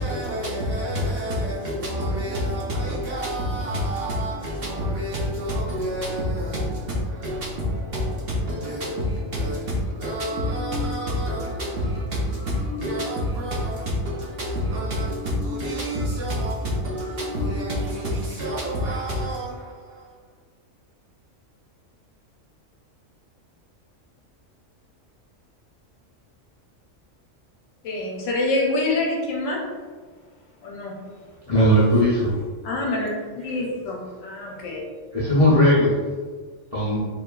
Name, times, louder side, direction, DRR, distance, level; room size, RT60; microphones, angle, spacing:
voice 1, 0.0-20.2 31.6-32.3 33.4-33.8, equal, 65° right, 0.6 m, -28 dB
sound 1, 9.8-17.7 18.0-18.1 18.3-19.1, left 1 dB, 30° right, 1.1 m, -35 dB
voice 2, 27.8-29.6 30.6-30.9 32.6-33.1 33.4-34.8, left 2 dB, 80° left, 1.0 m, -26 dB
voice 3, 31.5-32.3 35.1-35.9 36.7-37.1, equal, 50° left, 0.4 m, -18 dB
2.9 x 2.2 x 2.2 m
omnidirectional pair, 1.3 m